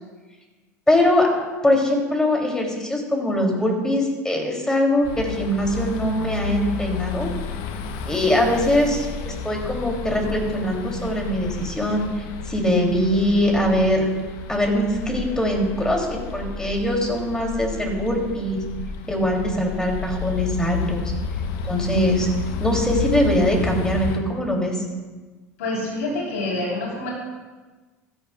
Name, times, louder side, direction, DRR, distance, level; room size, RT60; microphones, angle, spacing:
voice 1, 0.9-1.3 1.6-7.3 8.0-14.1 14.5-18.6 19.1-21.0 21.6-22.3 22.6-24.7, left 1 dB, 10° left, 0 dB, 3.4 m, -22 dB
sound 1, 5.0-24.2, left 6 dB, 60° left, 1.2 m, -31 dB
voice 2, 25.6-27.1, left 2 dB, 75° left, -3 dB, 4.2 m, -27 dB
16.5 x 13.5 x 2.5 m, 1.3 s
hypercardioid pair, 80°, 8 cm